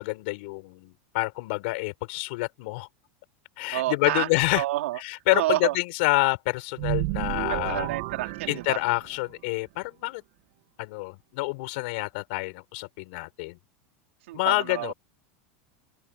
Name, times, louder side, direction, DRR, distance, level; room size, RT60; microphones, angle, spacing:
voice 1, 0.0-2.9 3.6-4.6 5.0-7.9 8.5-10.2 10.8-13.6 14.3-14.9, left 25 dB, 60° left, 5.8 m, -27 dB
voice 2, 3.7-4.3 4.5-5.0 5.3-5.8 7.5-8.8 14.3-14.9, right 16 dB, 85° right, 4.2 m, -29 dB
sound 1, 6.8-9.3, right 21 dB, 55° right, 1.9 m, -32 dB
open air
supercardioid pair, 160°, 7 cm